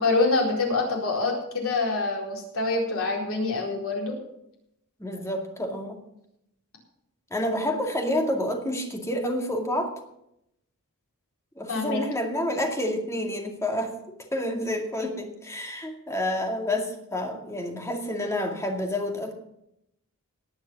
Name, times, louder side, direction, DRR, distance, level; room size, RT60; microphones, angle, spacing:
voice 1, 0.0-4.2 11.7-12.0, left 3 dB, 65° left, -1 dB, 4.3 m, -25 dB
voice 2, 5.0-6.0 7.3-9.9 11.6-19.3, left 1 dB, 15° left, 3 dB, 2.1 m, -29 dB
18.5 x 6.5 x 7.1 m, 0.80 s
head